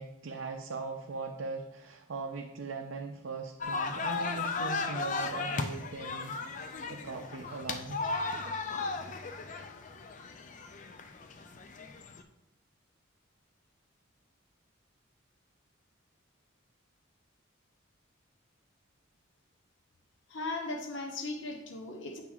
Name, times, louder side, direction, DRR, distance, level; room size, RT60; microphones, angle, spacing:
voice 1, 0.0-6.4 6.9-8.0, right 4 dB, 65° right, 2 dB, 0.5 m, -40 dB
sound 1, 3.6-12.2, left 4 dB, 40° left, 0.4 m, -36 dB
voice 2, 20.3-22.2, left 2 dB, 60° left, 3 dB, 0.8 m, -37 dB
8.6 x 5.8 x 2.3 m, 0.89 s
head